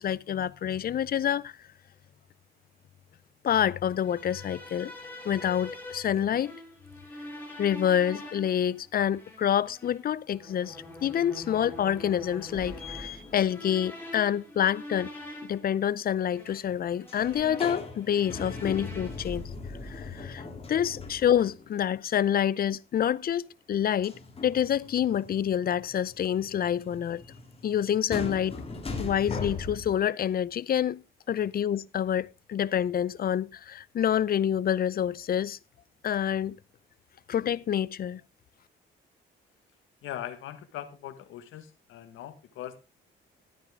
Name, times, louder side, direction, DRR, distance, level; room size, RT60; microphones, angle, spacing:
voice 1, 0.0-1.5 3.4-4.9 5.2-6.6 7.6-10.8 11.0-15.1 15.4-19.4 19.8-20.4 20.7-27.2 27.6-28.6 29.0-31.0 31.3-35.6 36.0-36.6 37.3-38.2, left 9 dB, 50° left, 0.6 m, -27 dB
sound 1, 3.9-19.4, left 1 dB, 10° left, 5.0 m, -45 dB
sound 2, 12.5-14.0 17.1-21.7 24.0-30.0, left 3 dB, 30° left, 3.3 m, -39 dB
voice 2, 40.0-42.8, left 11 dB, 85° left, 1.6 m, -40 dB
13.0 x 9.4 x 3.7 m
cardioid pair, 90°, 20 cm